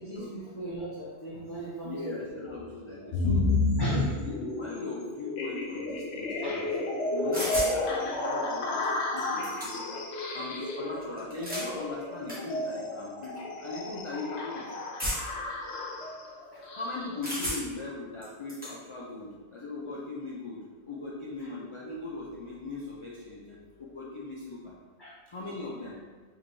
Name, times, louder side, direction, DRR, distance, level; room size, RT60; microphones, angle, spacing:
voice 1, 0.0-2.1 3.8-4.0 6.4-6.7 16.5-16.6 25.0-25.1, right 1 dB, 25° left, -10 dB, 0.8 m, -39 dB
voice 2, 1.8-6.8 7.1-14.7 16.7-24.8 25.3-26.0, left 2 dB, 50° left, -4 dB, 0.3 m, -39 dB
sound 1, 3.1-17.2, left 2 dB, 75° left, 0.9 m, -31 dB
sound 2, 7.3-7.8 8.8-8.9 9.2-10.0 11.2-11.7 12.3-12.4 13.2-13.4 15.0-15.4 17.2-17.8 18.2-18.7, equal, 10° right, 1.1 m, -33 dB
4.6 x 2.9 x 2.6 m, 1.4 s
omnidirectional pair, 1.1 m